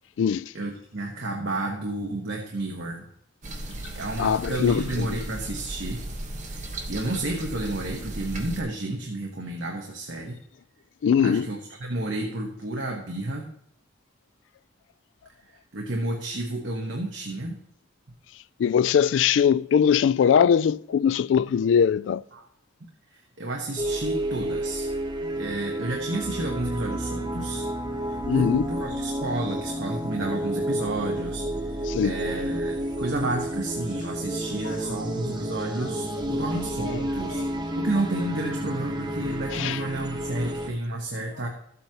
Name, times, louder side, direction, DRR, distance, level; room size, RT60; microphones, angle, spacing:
voice 1, 0.5-3.1 3.9-6.0 6.5-6.6 6.9-10.4 11.2-13.5 15.5-17.6 22.3-22.5 22.8-24.9 25.3-27.7 28.1-37.5 37.7-41.5, right 2 dB, 75° right, 1.3 m, -31 dB
sound 1, 3.4-8.6, right 1 dB, 40° right, 1.2 m, -36 dB
voice 2, 4.2-5.1 11.0-11.5 18.6-22.2 28.3-28.7 31.9-32.2 39.5-39.8, left 7 dB, 75° left, 0.3 m, -21 dB
sound 2, 23.8-40.7, right 1 dB, 25° right, 0.9 m, -30 dB
13.0 x 8.2 x 2.9 m
head